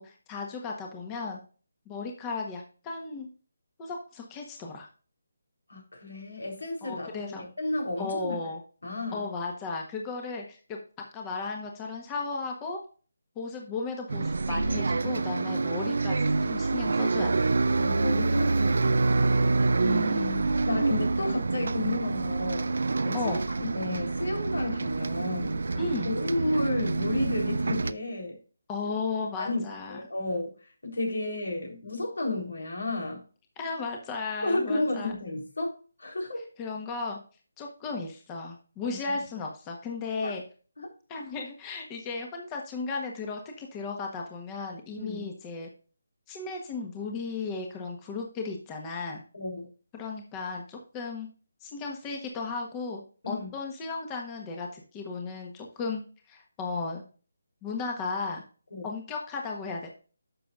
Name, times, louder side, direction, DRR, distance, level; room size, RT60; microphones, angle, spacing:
voice 1, 0.0-1.4 1.9-3.3 3.8-4.9 6.8-7.5 8.0-8.6 9.1-10.8 11.1-12.8 13.3-17.5 19.8-20.5 23.1-23.4 25.8-26.1 28.7-30.0 33.6-35.1 36.6-37.2 37.6-40.4 41.1-45.7 46.3-49.2 49.9-51.3 51.6-53.0 53.3-56.0 56.3-57.0 57.6-58.4 58.8-59.9, left 4 dB, 15° left, 1 dB, 1.4 m, -35 dB
voice 2, 5.7-8.4 8.8-9.2 17.7-19.6 20.7-22.7 23.0-28.4 29.4-30.5 30.8-33.2 34.4-36.5 38.8-39.2 40.2-40.3 40.8-40.9 45.0-45.3 49.3-49.7 53.2-53.5 58.7-58.9, left 2 dB, 80° left, 1 dB, 3.9 m, -32 dB
Bus, 14.1-27.9, right 3 dB, 70° right, 0.5 m, -27 dB
11.0 x 6.7 x 2.5 m, 0.37 s
figure-of-eight pair, 160°, 0 cm